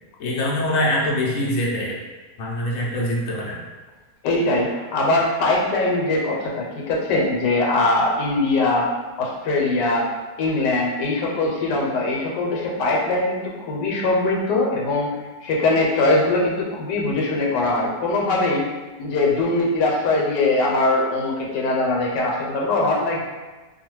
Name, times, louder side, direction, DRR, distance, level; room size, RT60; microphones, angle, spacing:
voice 1, 0.2-2.0 2.4-3.6, left 1 dB, 65° left, -3 dB, 0.8 m, -23 dB
voice 2, 4.2-8.9 9.2-10.1 10.4-15.1 15.4-18.7 19.0-23.2, left 2 dB, 90° left, -2 dB, 1.3 m, -21 dB
2.7 x 2.2 x 3.0 m, 1.2 s
omnidirectional pair, 1.8 m